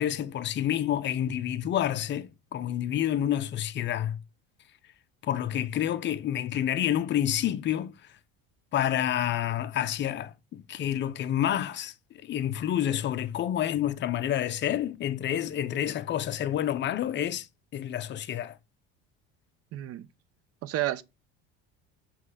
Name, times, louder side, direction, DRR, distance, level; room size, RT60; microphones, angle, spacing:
voice 1, 0.0-4.2 5.2-8.0 8.7-17.5 17.7-18.6, left 11 dB, 35° left, 0.7 m, -29 dB
voice 2, 19.7-20.1 20.6-21.0, right 14 dB, 50° right, 0.8 m, -30 dB
7.5 x 3.2 x 6.3 m
cardioid pair, 130°, 30 cm